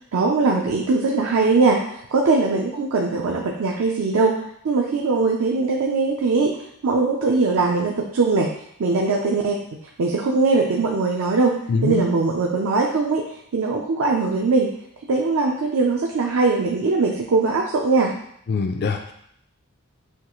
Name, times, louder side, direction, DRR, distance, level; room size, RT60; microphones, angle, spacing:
voice 1, 0.1-4.3 4.6-6.6 6.8-8.5 8.8-9.6 10.0-11.6 11.8-13.2 13.5-14.7 15.1-18.1, right 3 dB, 70° right, 0 dB, 0.5 m, -20 dB
voice 2, 11.7-12.1 18.5-19.1, left 4 dB, 50° left, 4 dB, 0.4 m, -23 dB
6.3 x 2.4 x 3.0 m, 0.71 s
head